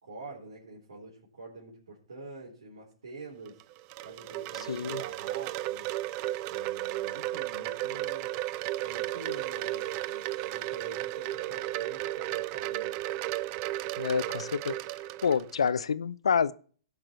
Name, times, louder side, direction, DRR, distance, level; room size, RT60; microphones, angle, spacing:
voice 1, 0.0-3.6 4.0-5.9 6.5-8.3 8.8-12.9, right 3 dB, 80° right, 4.2 m, -46 dB
Wind chime, 3.5-15.7, right 16 dB, 40° right, 0.4 m, -34 dB
voice 2, 4.7-5.0 14.0-14.8 15.2-16.5, left 6 dB, 85° left, 0.7 m, -28 dB
18.0 x 6.1 x 4.5 m
hypercardioid pair, 130°, 3 cm